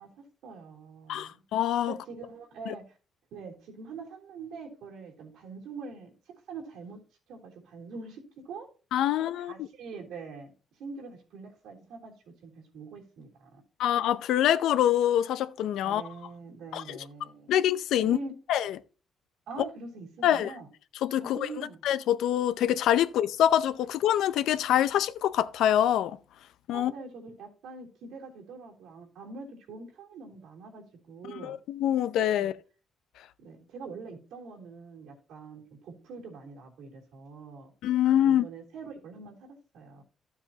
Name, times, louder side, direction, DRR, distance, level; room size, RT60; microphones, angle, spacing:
voice 1, 0.0-1.4 1.9-2.8 3.3-7.0 7.3-8.7 9.3-10.5 10.8-13.6 15.8-17.5 18.0-18.3 19.5-20.7 21.2-21.8 26.7-31.6 32.3-32.5 33.4-37.7 38.2-40.0, right 4 dB, 85° right, 3.3 m, -44 dB
voice 2, 1.1-1.9 2.7-2.8 8.9-9.7 13.8-16.0 16.7-17.0 17.5-18.2 18.5-18.7 20.2-20.5 21.0-21.5 21.8-26.2 26.7-26.9 31.4-32.5 37.8-38.5, left 11 dB, 85° left, 0.6 m, -25 dB
12.5 x 7.3 x 2.9 m
cardioid pair, 90°, 0 cm